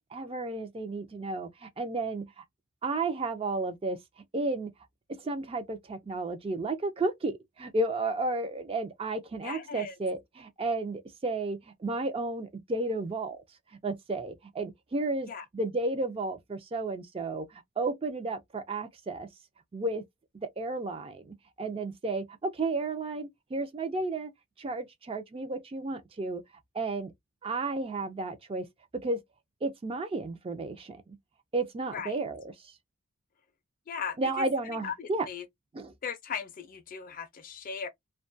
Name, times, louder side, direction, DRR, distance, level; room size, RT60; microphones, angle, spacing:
voice 1, 0.0-2.4 2.8-4.0 4.3-4.7 5.1-13.4 13.8-19.3 19.7-20.0 20.6-24.3 24.6-26.4 26.7-27.1 27.4-28.7 29.0-29.2 29.6-31.2 31.5-32.7 34.2-35.3 35.7-35.9, right 2 dB, 25° right, 0.4 m, -33 dB
voice 2, 9.4-10.0 15.3-15.5 31.9-32.2 33.9-34.5 34.8-35.5 36.0-37.9, left 6 dB, 40° left, 0.4 m, -38 dB
2.2 x 2.2 x 2.5 m
head